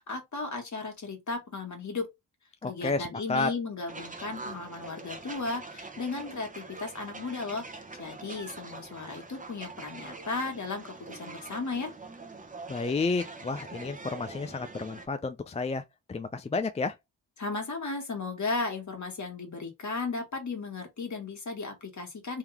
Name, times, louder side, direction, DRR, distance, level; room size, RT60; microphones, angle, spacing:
voice 1, 0.0-2.1 2.7-11.9 17.4-22.4, left 3 dB, 40° left, 2.0 m, -35 dB
voice 2, 2.6-3.5 12.7-17.0, left 3 dB, 15° left, 0.3 m, -31 dB
sound 1, 3.9-15.1, right 3 dB, 20° right, 0.9 m, -44 dB
3.6 x 2.8 x 3.4 m
cardioid pair, 85°, 44 cm